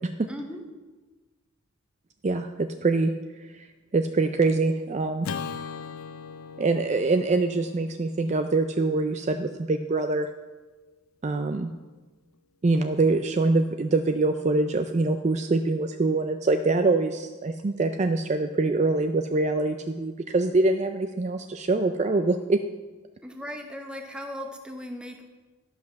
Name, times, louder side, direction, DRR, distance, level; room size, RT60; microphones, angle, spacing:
voice 1, 0.3-0.6 23.2-25.3, equal, 5° right, 4 dB, 0.9 m, -37 dB
voice 2, 2.2-3.7 3.9-5.3 6.6-10.3 11.2-11.7 12.6-22.6, right 3 dB, 35° right, 7 dB, 0.4 m, -24 dB
Acoustic guitar / Strum, 5.2-9.7, left 6 dB, 85° left, 0.6 m, -40 dB
11.5 x 5.8 x 6.3 m, 1.3 s
head